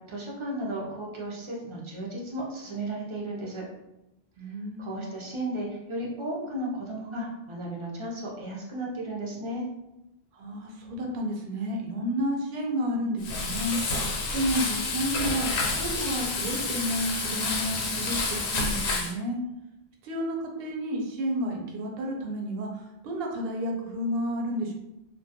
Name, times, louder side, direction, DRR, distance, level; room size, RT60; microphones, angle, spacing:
voice 1, 0.1-3.6 4.8-9.7, right 1 dB, 45° right, -3 dB, 0.4 m, -34 dB
voice 2, 4.4-5.0 10.3-14.1 14.3-18.2 18.5-19.4 20.0-22.7 23.0-24.7, equal, 70° right, 0 dB, 0.8 m, -31 dB
Frying (food), 13.2-19.1, left 3 dB, 90° left, 0.8 m, -29 dB
2.2 x 2.1 x 2.7 m, 0.91 s
omnidirectional pair, 1.1 m